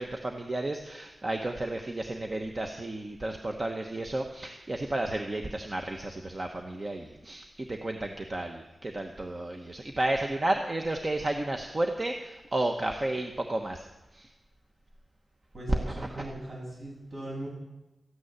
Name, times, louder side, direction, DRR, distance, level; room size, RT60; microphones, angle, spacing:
voice 1, 0.0-13.9 14.1-14.3 15.9-16.2, right 1 dB, 30° right, 3 dB, 1.1 m, -32 dB
voice 2, 15.5-17.5, right 1 dB, 55° right, -3 dB, 7.7 m, -39 dB
14.0 x 9.5 x 9.4 m, 1.0 s
wide cardioid pair, 135°, 0 cm